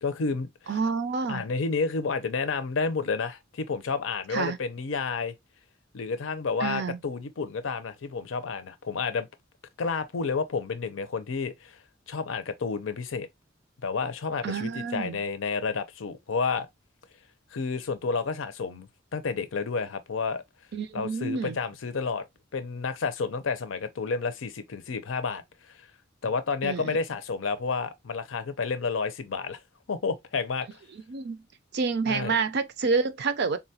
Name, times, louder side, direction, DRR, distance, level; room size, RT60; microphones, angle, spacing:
voice 1, 0.0-0.5 1.3-5.3 5.9-9.3 9.8-11.8 12.1-13.3 13.8-16.7 17.5-20.4 20.9-22.2 22.5-25.9 26.2-29.6 29.9-30.8 32.1-32.3, left 4 dB, 80° left, 0.6 m, -30 dB
voice 2, 0.7-1.4 4.3-4.6 6.6-7.0 14.4-15.2 20.7-21.6 26.6-27.0 31.1-31.4 31.7-33.6, right 4 dB, 55° right, 0.4 m, -28 dB
3.9 x 2.2 x 2.7 m
head